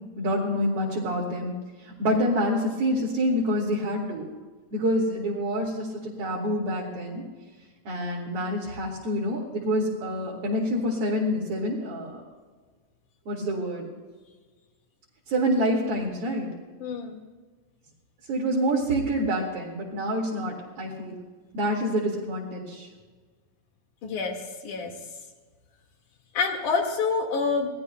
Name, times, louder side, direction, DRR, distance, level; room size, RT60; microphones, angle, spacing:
voice 1, 0.2-1.5 1.8-4.3 4.7-7.2 7.8-12.2 13.3-13.9 15.3-16.5 18.3-21.2 21.5-22.9, equal, 50° right, -4 dB, 2.9 m, -27 dB
voice 2, 16.8-17.2 24.0-24.9 26.3-27.7, left 4 dB, 65° left, 3 dB, 3.3 m, -27 dB
26.0 x 19.0 x 2.2 m, 1.4 s
omnidirectional pair, 3.9 m